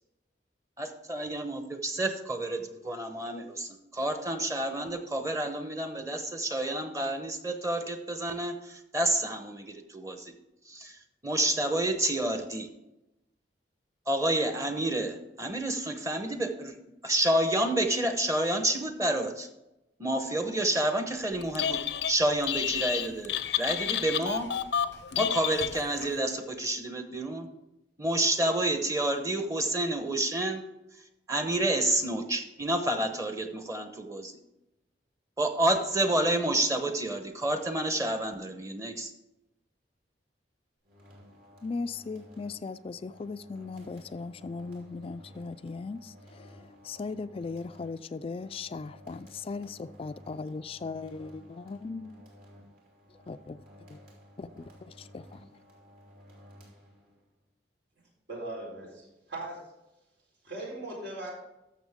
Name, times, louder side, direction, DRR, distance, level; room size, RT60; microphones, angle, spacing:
voice 1, 0.8-10.3 10.7-12.7 14.1-16.7 17.0-19.5 20.0-21.8 22.1-24.5 25.2-27.5 28.0-30.6 31.3-34.3 35.4-39.1, right 1 dB, 20° right, 0.9 m, -29 dB
Telephone, 21.4-22.1 22.4-26.1, left 9 dB, 75° left, 0.6 m, -30 dB
sound 1, 40.8-57.3, equal, 55° right, 3.0 m, -54 dB
voice 2, 41.6-52.1 53.1-53.6 53.9-54.0 54.4-55.4, left 4 dB, 35° left, 0.3 m, -38 dB
voice 3, 58.3-58.9 59.3-59.6 60.4-61.3, right 2 dB, 80° right, 4.0 m, -38 dB
13.5 x 6.5 x 3.6 m
head